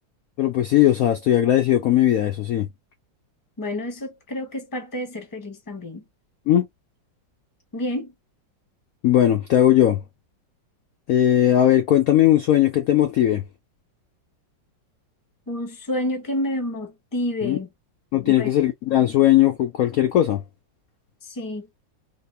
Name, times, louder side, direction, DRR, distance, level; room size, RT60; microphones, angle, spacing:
voice 1, 0.4-2.7 6.5-6.7 9.0-10.0 11.1-13.4 17.4-17.6 18.1-20.4, left 12 dB, 65° left, 0.9 m, -18 dB
voice 2, 3.6-6.0 7.7-8.1 15.5-17.7 18.2-18.5 21.2-21.7, left 1 dB, 15° left, 0.9 m, -29 dB
4.0 x 2.3 x 2.6 m
omnidirectional pair, 2.0 m